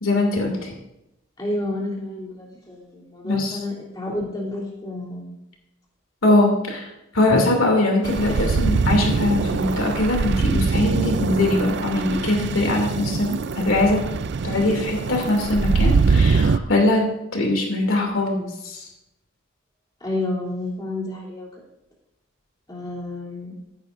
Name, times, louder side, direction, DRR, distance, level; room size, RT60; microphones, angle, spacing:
voice 1, 0.0-0.7 3.2-3.6 6.2-14.0 14.4-17.0 17.3-18.9, left 2 dB, 70° left, 1 dB, 2.7 m, -21 dB
voice 2, 1.4-5.3 20.0-21.5 22.7-23.6, left 2 dB, 20° left, -5 dB, 3.1 m, -30 dB
sound 1, 8.0-16.6, right 4 dB, 55° right, 0.4 m, -23 dB
14.5 x 10.5 x 2.6 m, 0.88 s
head